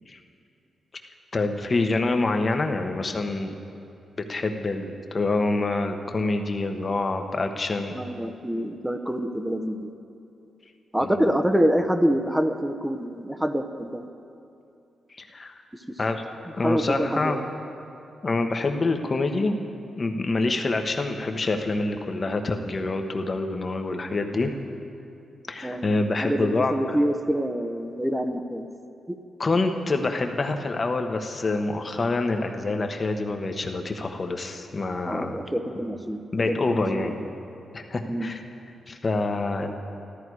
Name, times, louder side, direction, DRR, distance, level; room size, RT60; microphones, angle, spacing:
voice 1, 1.3-3.6 4.3-7.9 11.0-11.3 15.2-15.5 16.0-16.2 16.5-17.4 18.2-19.6 20.0-24.5 25.5-27.0 29.4-35.4 36.3-37.1 37.7-38.4 38.9-39.7, left 3 dB, 40° left, 5 dB, 1.2 m, -26 dB
voice 2, 7.9-9.9 10.9-14.1 16.6-17.4 25.6-25.9 26.2-28.6 29.1-29.2 35.0-36.2 36.7-37.1 38.1-38.3, equal, 10° right, 6 dB, 0.9 m, -26 dB
13.5 x 13.5 x 4.8 m, 2.6 s
cardioid pair, 60°, 0 cm